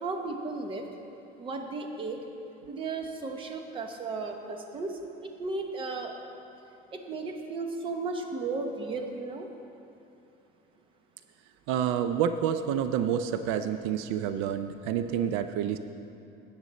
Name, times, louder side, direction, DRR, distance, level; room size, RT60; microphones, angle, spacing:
voice 1, 0.0-0.8 1.4-2.2 2.7-6.1 6.9-9.5, right 3 dB, 25° right, 4 dB, 0.9 m, -35 dB
voice 2, 11.7-15.8, right 9 dB, 80° right, 10 dB, 0.5 m, -28 dB
13.0 x 8.8 x 4.1 m, 2.7 s
cardioid pair, 160°, 20 cm